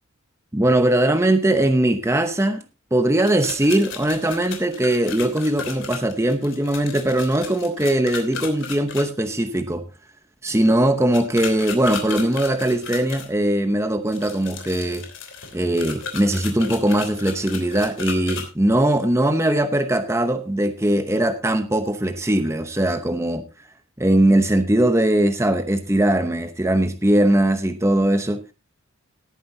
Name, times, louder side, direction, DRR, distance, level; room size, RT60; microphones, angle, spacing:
voice 1, 0.5-2.6 2.9-9.8 10.4-15.1 15.5-23.4 24.0-28.4, right 1 dB, 15° right, 0.8 m, -20 dB
sound 1, 3.2-9.0 11.1-13.3 14.1-18.5, left 5 dB, 60° left, 3.2 m, -34 dB
18.5 x 9.5 x 2.8 m
head